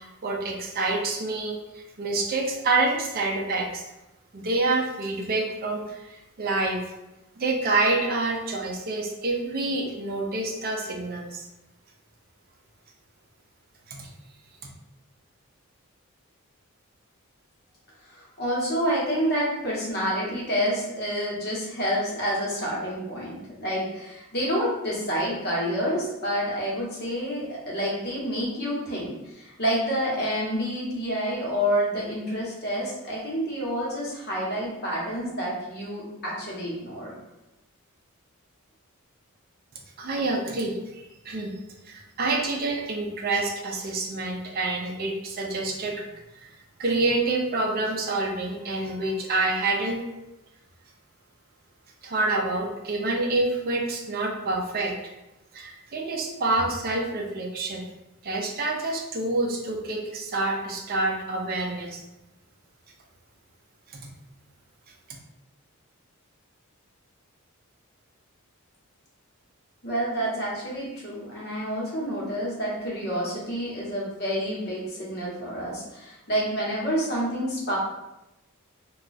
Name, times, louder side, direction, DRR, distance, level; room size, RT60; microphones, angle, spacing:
voice 1, 0.0-3.8 4.3-6.8 7.4-11.4 13.9-14.1 40.0-41.5 41.9-45.9 46.4-46.5 46.8-50.0 52.0-54.9 55.5-57.8 58.2-62.0, right 2 dB, 40° right, 0 dB, 0.4 m, -27 dB
voice 2, 18.1-37.1 69.8-77.8, equal, 45° left, -5 dB, 1.0 m, -28 dB
2.3 x 2.2 x 3.9 m, 0.96 s
head